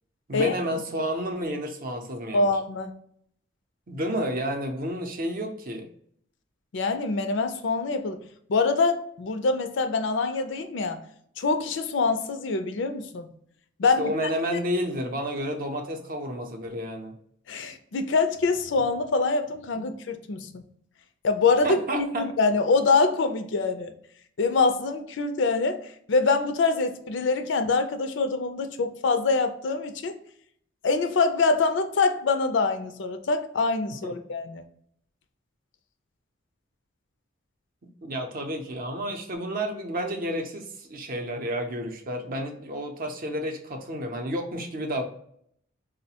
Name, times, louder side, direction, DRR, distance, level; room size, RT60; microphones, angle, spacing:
voice 1, 0.3-2.5 3.9-5.9 14.0-17.2 19.8-19.9 21.6-22.2 34.0-34.1 38.0-45.0, equal, 45° right, 4 dB, 0.6 m, -31 dB
voice 2, 2.3-2.9 6.7-8.2 8.5-11.0 11.4-13.3 13.8-14.1 14.5-14.6 17.5-20.6 21.2-21.7 21.9-23.9 24.4-25.8 26.1-30.1 30.8-34.6, left 4 dB, 65° left, 8 dB, 0.4 m, -24 dB
3.9 x 2.1 x 2.8 m, 0.67 s
head